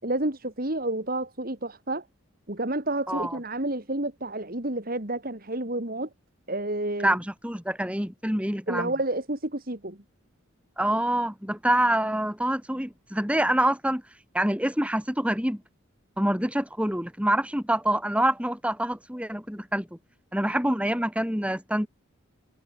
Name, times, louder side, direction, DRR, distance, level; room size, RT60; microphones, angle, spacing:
voice 1, 0.0-2.0 2.5-6.1 6.5-7.1 8.7-10.0, right 1 dB, 45° right, 2.7 m, -30 dB
voice 2, 3.1-3.4 7.0-8.9 10.8-14.0 14.3-15.6 16.2-19.9 20.3-21.9, right 1 dB, 5° right, 6.5 m, -26 dB
head